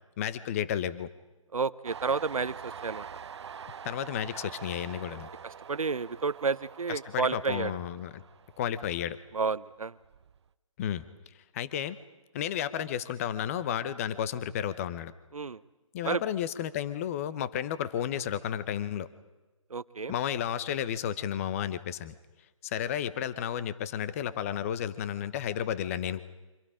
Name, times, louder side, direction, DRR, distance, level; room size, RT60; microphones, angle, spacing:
voice 1, 0.2-1.1 3.8-5.3 7.0-8.2 8.6-9.2 10.8-11.0 11.5-12.0 12.3-15.1 15.9-19.1 20.1-22.1 22.6-26.2, left 9 dB, 25° left, 15 dB, 0.9 m, -32 dB
voice 2, 1.5-3.1 5.7-7.7 9.3-9.9 15.3-15.6 16.0-16.2 19.7-20.1, right 5 dB, 85° right, 15 dB, 0.8 m, -30 dB
Train, 1.8-9.3 9.6-10.5, right 7 dB, 55° right, 0.7 m, -45 dB
30.0 x 25.5 x 5.0 m, 1.2 s
figure-of-eight pair, 155°, 17 cm